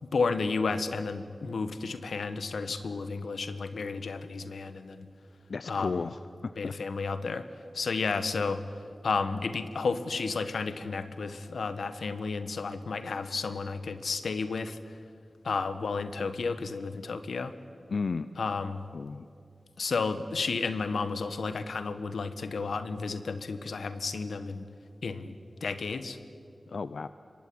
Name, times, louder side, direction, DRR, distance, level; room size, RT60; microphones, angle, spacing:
voice 1, 0.0-5.1 5.6-6.0 6.6-7.5 7.7-8.6 9.0-14.8 15.4-17.5 18.4-18.9 19.8-24.7 25.0-25.3 25.6-26.2, left 4 dB, 90° left, 11 dB, 1.5 m, -32 dB
voice 2, 5.5-6.7 17.9-18.3 18.9-19.3 26.7-27.1, left 4 dB, 65° left, 13 dB, 0.6 m, -33 dB
27.0 x 23.0 x 9.7 m, 2.3 s
wide cardioid pair, 115°, 0 cm